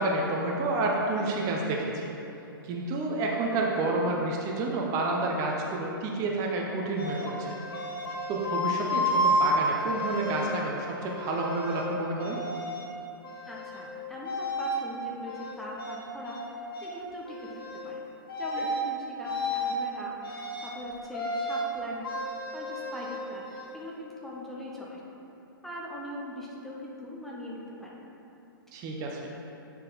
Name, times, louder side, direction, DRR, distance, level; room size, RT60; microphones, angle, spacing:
voice 1, 0.0-2.0 2.6-7.6 8.3-12.4 18.6-18.7 28.7-29.2, right 2 dB, 30° right, -1 dB, 0.8 m, -29 dB
sound 1, 7.0-10.5 11.1-11.9 12.2-12.9 13.2-13.9 14.2-14.8 15.3-16.5 16.7-16.9 17.3-17.9 18.3-18.9 19.2-19.8 20.2-20.8 21.1-21.7 22.0-23.7, equal, 75° left, 1.2 m, -31 dB
voice 2, 13.5-18.1 18.4-22.0 22.5-23.4 23.7-25.0 25.6-28.0, left 1 dB, 5° left, -5 dB, 0.8 m, -41 dB
8.8 x 4.0 x 4.0 m, 2.9 s
hypercardioid pair, 135°, 12 cm